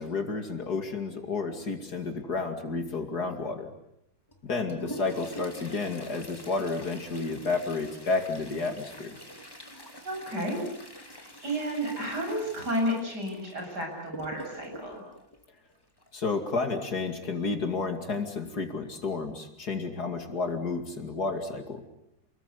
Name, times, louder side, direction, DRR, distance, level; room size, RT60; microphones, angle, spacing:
voice 1, 0.0-3.7 4.5-9.2 16.1-21.8, left 4 dB, 55° left, 6 dB, 3.0 m, -31 dB
Toilet flush, 4.3-16.3 18.1-18.2 18.6-18.7 19.5-19.6 20.2-20.5 20.9-21.0, equal, 10° left, 2.6 m, -45 dB
voice 2, 10.0-10.6 10.9-15.0, equal, 55° right, 1 dB, 8.4 m, -32 dB
29.5 x 21.0 x 8.4 m, 0.79 s
omnidirectional pair, 2.1 m